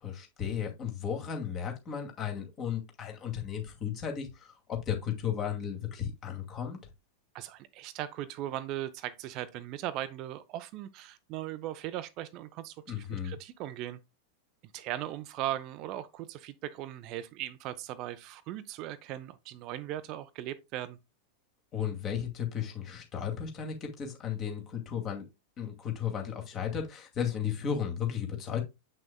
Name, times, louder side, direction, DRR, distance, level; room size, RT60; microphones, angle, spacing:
voice 1, 0.0-4.3 4.7-6.8 12.9-13.3 21.7-25.3 25.6-28.6, left 8 dB, 30° left, 2.2 m, -34 dB
voice 2, 7.3-14.0 14.7-21.0, right 13 dB, 40° right, 0.6 m, -38 dB
7.6 x 6.1 x 2.2 m
figure-of-eight pair, 90°, 0 cm